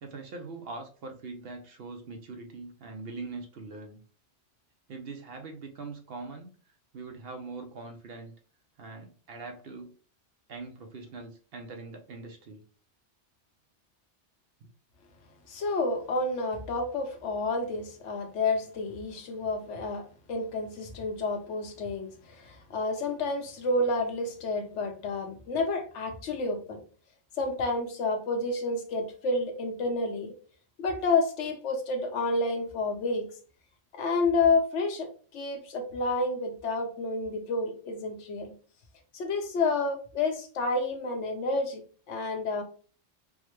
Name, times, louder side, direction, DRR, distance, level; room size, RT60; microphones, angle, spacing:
voice 1, 0.0-4.0 4.9-6.5 6.9-8.3 8.8-9.9 10.5-12.6, right 3 dB, 60° right, 4 dB, 0.7 m, -42 dB
voice 2, 15.5-20.0 20.3-26.8 27.4-30.3 30.8-33.3 33.9-35.1 35.3-38.5 39.1-41.8 42.1-42.6, left 3 dB, 75° left, 4 dB, 1.0 m, -29 dB
3.5 x 2.1 x 3.0 m, 0.40 s
omnidirectional pair, 1.2 m